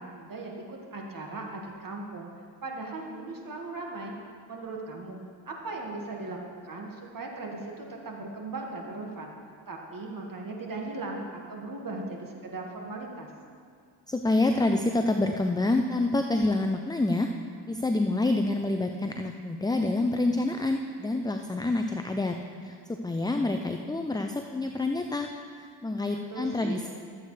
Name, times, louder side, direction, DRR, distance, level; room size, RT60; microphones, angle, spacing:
voice 1, 0.0-2.3 2.6-4.1 4.5-5.2 5.5-9.3 9.7-13.3 26.3-26.8, right 3 dB, 45° right, 0 dB, 1.9 m, -38 dB
voice 2, 14.1-17.3 17.7-25.3 25.6-26.9, left 2 dB, 10° left, 5 dB, 0.4 m, -27 dB
14.0 x 8.2 x 3.3 m, 2.2 s
supercardioid pair, 65°, 48 cm